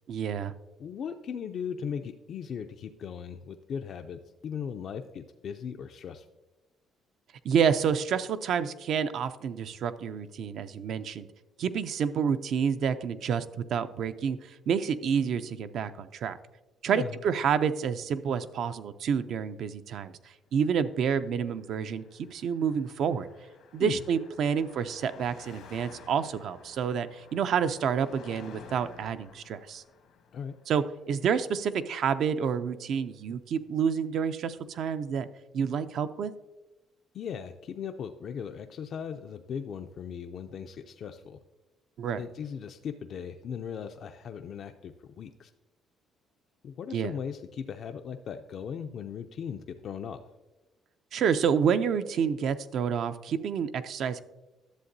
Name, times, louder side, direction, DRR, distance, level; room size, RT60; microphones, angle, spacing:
voice 1, 0.1-0.5 7.4-11.3 11.6-13.5 13.7-16.4 16.8-20.1 20.5-22.1 22.3-23.3 23.7-29.8 30.7-35.3 35.5-36.3 42.0-42.2 46.9-47.1 51.1-54.2, right 7 dB, 65° right, 11 dB, 0.4 m, -28 dB
voice 2, 0.8-6.2 16.9-17.2 23.8-24.0 30.3-30.6 37.1-41.4 42.2-45.5 46.6-50.2, left 7 dB, 55° left, 6 dB, 0.4 m, -38 dB
Car passing by, 20.9-32.4, left 6 dB, 80° left, 1.1 m, -53 dB
11.5 x 7.2 x 2.6 m, 1.1 s
cardioid pair, 95°, 0 cm